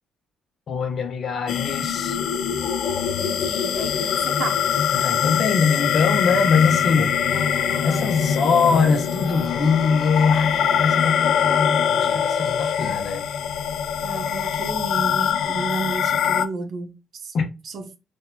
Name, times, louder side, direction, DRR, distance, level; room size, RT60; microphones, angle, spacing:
voice 1, 0.7-2.2 4.9-7.2 7.8-13.2 17.3-17.5, left 5 dB, 55° left, 0.8 m, -22 dB
sound 1, 1.5-16.5, left 8 dB, 75° left, 0.3 m, -23 dB
voice 2, 3.2-4.6 14.0-17.3 17.6-18.0, right 4 dB, 60° right, 0.9 m, -32 dB
sound 2, 7.3-13.0, right 2 dB, ahead, 1.3 m, -40 dB
4.2 x 2.7 x 2.7 m
cardioid pair, 90°, 0 cm